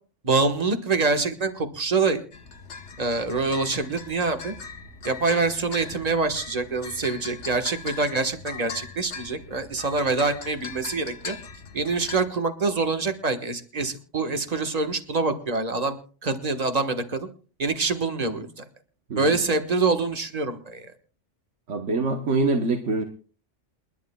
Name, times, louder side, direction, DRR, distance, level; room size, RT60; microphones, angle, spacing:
voice 1, 0.2-2.2 3.0-4.5 5.0-11.3 11.7-17.3 17.6-18.7 19.2-20.9, right 3 dB, 35° right, 7 dB, 1.4 m, -25 dB
sound 1, 2.3-12.3, left 5 dB, 70° left, 1.4 m, -40 dB
voice 2, 21.7-23.0, right 3 dB, 80° right, 5 dB, 1.4 m, -24 dB
28.0 x 11.5 x 2.3 m, 0.38 s
omnidirectional pair, 1.2 m